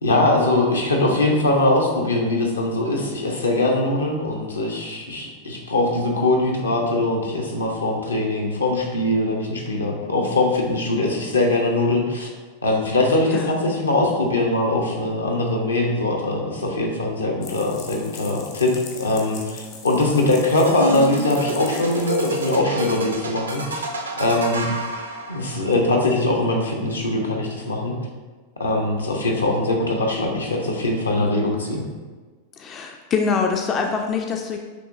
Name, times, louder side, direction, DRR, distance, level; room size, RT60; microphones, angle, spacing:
voice 1, 0.0-12.3 12.6-23.9 24.2-24.7 25.3-27.9 28.6-31.8, left 2 dB, 75° left, 0 dB, 0.7 m, -22 dB
sound 1, 17.4-22.6, left 5 dB, 45° left, 0.7 m, -41 dB
sound 2, 20.5-25.7, right 2 dB, 75° right, 0.5 m, -28 dB
voice 2, 32.6-34.6, left 5 dB, 30° left, 3 dB, 0.3 m, -24 dB
6.1 x 3.0 x 2.5 m, 1.4 s
figure-of-eight pair, 90°, 0 cm